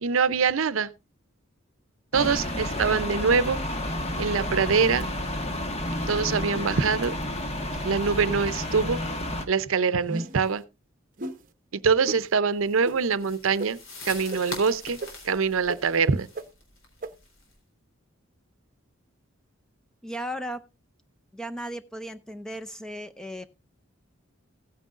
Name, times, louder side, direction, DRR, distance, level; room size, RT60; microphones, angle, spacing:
voice 1, 0.0-0.9 2.1-3.6 4.2-5.1 6.1-7.1 7.8-9.0 9.5-10.6 11.7-13.8 14.0-15.0 15.2-16.3, right 5 dB, 75° right, 0.6 m, -24 dB
sound 1, 2.1-9.5, left 1 dB, 30° left, 1.3 m, -31 dB
sound 2, 10.0-10.5 11.2-11.4 12.1-12.2 12.8-13.0 13.6-13.7 14.3-14.4 15.0-15.1 15.7-15.8 16.4-16.5 17.0-17.1, right 2 dB, 40° right, 0.8 m, -32 dB
sound 3, 12.6-17.5, left 2 dB, 75° left, 3.7 m, -43 dB
voice 2, 20.0-20.6 21.3-23.5, equal, 5° left, 0.5 m, -36 dB
16.0 x 9.2 x 2.5 m
head